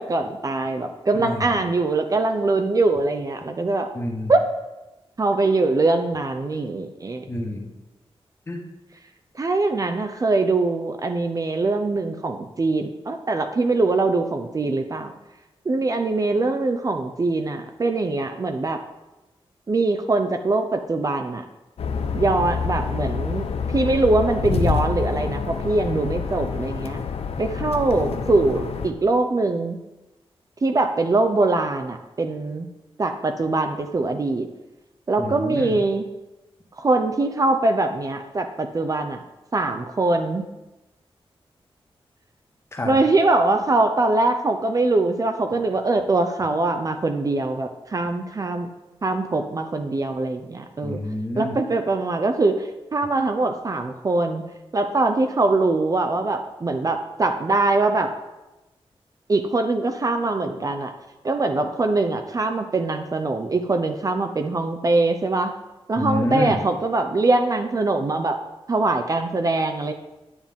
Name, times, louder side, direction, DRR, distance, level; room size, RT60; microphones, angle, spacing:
voice 1, 0.0-3.9 4.3-4.4 5.2-7.3 9.4-15.1 15.7-18.8 19.7-21.4 22.1-23.5 23.7-27.0 27.4-29.8 30.6-32.7 33.0-34.5 35.1-36.1 36.8-39.2 39.5-40.4 42.8-48.7 49.0-51.0 51.4-54.4 54.7-58.1 59.3-60.9 61.2-65.5 65.9-68.4 68.7-69.9, right 2 dB, 35° right, 6 dB, 0.6 m, -22 dB
voice 2, 1.1-1.5 3.9-4.3 7.3-7.7 8.5-8.6 35.2-35.7 42.7-43.0 50.8-51.6 66.0-66.6, left 1 dB, 25° left, 1 dB, 1.5 m, -28 dB
sound 1, 21.8-28.9, left 5 dB, 90° left, 0.7 m, -27 dB
9.7 x 9.0 x 3.6 m, 1.0 s
wide cardioid pair, 145°, 10 cm